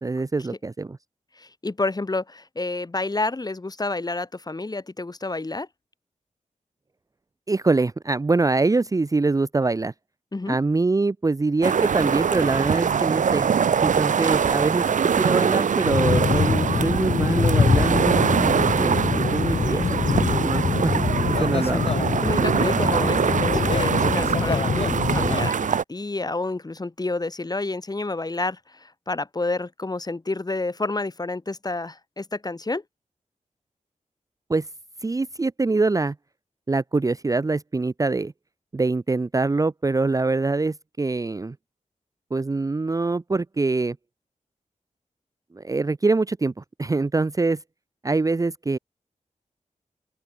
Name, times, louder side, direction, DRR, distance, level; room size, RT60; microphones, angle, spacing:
voice 1, 0.0-1.0 7.5-9.9 10.5-14.9 15.2-18.2 18.8-20.9 21.3-21.9 34.5-34.7 35.0-36.2 36.7-38.3 38.7-41.6 42.3-44.0 45.5-47.6 48.0-48.8, right 3 dB, 25° right, 0.7 m, -24 dB
voice 2, 1.4-5.7 10.3-10.6 22.2-32.8, left 2 dB, 30° left, 5.0 m, -29 dB
sound 1, 11.6-25.8, right 7 dB, 70° right, 0.7 m, -23 dB
sound 2, 15.9-25.5, left 5 dB, 50° left, 0.8 m, -24 dB
open air
wide cardioid pair, 95°, 13 cm